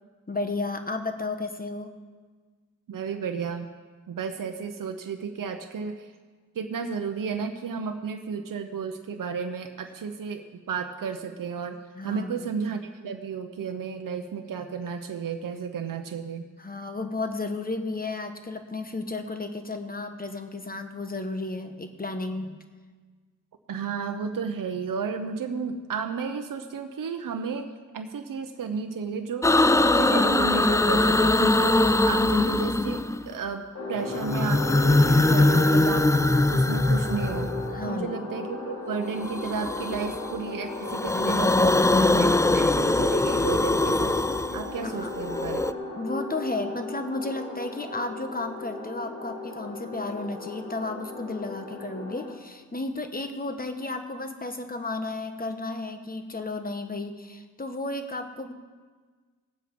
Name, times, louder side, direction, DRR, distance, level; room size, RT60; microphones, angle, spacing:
voice 1, 0.3-1.9 11.9-12.5 16.6-22.6 37.7-38.2 44.8-45.1 46.0-58.5, left 2 dB, 25° left, 6 dB, 1.3 m, -33 dB
voice 2, 2.9-3.7 4.1-6.1 6.5-11.8 12.0-16.5 23.7-36.1 36.5-37.5 37.8-44.2 44.5-45.6, right 5 dB, 75° right, 5 dB, 0.8 m, -33 dB
sound 1, 29.4-33.4 34.1-37.9 39.2-40.4 40.7-45.7, left 2 dB, 10° left, 0.4 m, -22 dB
sound 2, 33.7-52.3, left 3 dB, 55° left, 2.5 m, -36 dB
18.0 x 7.7 x 5.3 m, 1.4 s
cardioid pair, 65°, 33 cm